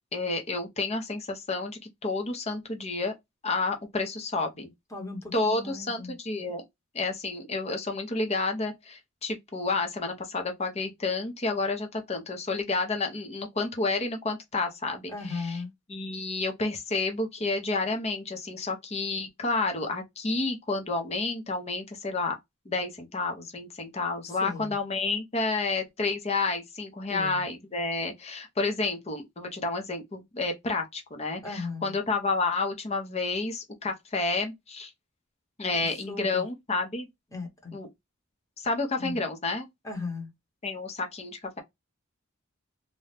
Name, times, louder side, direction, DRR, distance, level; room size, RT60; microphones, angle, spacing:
voice 1, 0.0-3.1 3.4-4.7 5.3-6.6 6.9-15.6 15.9-22.4 22.7-34.9 35.6-37.1 37.7-37.9 38.6-39.7 40.6-41.6, left 3 dB, 30° left, 0.7 m, -30 dB
voice 2, 4.9-6.2 15.1-15.7 24.3-24.8 27.1-27.4 31.4-32.0 35.8-36.4 37.3-37.8 39.0-39.1 39.8-40.3, left 3 dB, 15° left, 1.0 m, -37 dB
2.6 x 2.3 x 3.2 m
head